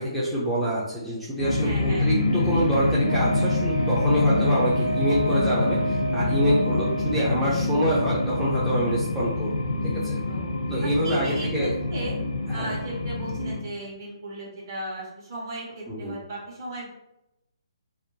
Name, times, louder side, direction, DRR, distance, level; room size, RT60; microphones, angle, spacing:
voice 1, 0.0-10.2 10.7-11.7 12.5-12.8 15.9-16.2, equal, ahead, -10 dB, 0.5 m, -26 dB
sound 1, 1.4-13.6, left 2 dB, 80° left, 0.6 m, -26 dB
voice 2, 1.6-2.1 10.3-10.5 10.8-12.1 12.5-16.9, right 1 dB, 40° right, -5 dB, 1.2 m, -36 dB
Wind instrument woodwind instrument, 3.0-7.5, right 2 dB, 65° right, 1.4 m, -31 dB
2.7 x 2.1 x 2.6 m, 0.86 s
figure-of-eight pair, 140°, 3 cm